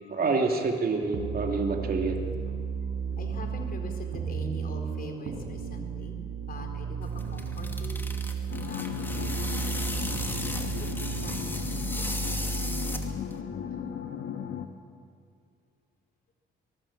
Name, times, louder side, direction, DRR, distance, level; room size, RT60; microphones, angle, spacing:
voice 1, 0.1-2.2, right 3 dB, 50° right, 3 dB, 2.7 m, -27 dB
sound 1, 1.1-13.1, right 6 dB, 65° right, 4.8 m, -34 dB
voice 2, 2.5-6.2 6.5-10.5 10.8-10.9 11.2-12.0 12.4-12.7 13.7-14.0, left 2 dB, 45° left, 4 dB, 4.3 m, -44 dB
sound 2, 7.0-13.4, left 1 dB, 10° left, 2.4 m, -37 dB
sound 3, 8.5-14.7, left 8 dB, 75° left, 1.7 m, -36 dB
23.5 x 20.0 x 7.3 m, 2.3 s
cardioid pair, 90°, 20 cm